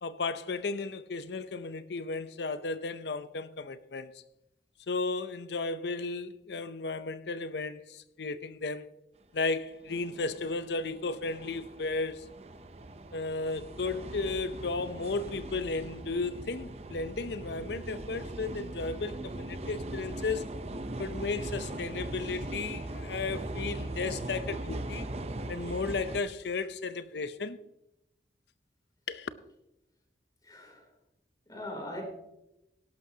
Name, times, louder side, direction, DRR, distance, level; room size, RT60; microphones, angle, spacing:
voice 1, 0.0-4.2 4.9-8.9 9.3-12.3 13.1-20.5 21.0-25.1 25.5-27.6 29.1-29.3, left 3 dB, 70° left, 0.6 m, -34 dB
sound 1, 9.8-26.2, right 1 dB, 35° right, 0.6 m, -40 dB
voice 2, 30.4-30.9 31.5-32.0, left 1 dB, 20° left, 3.2 m, -40 dB
17.5 x 11.5 x 2.8 m
head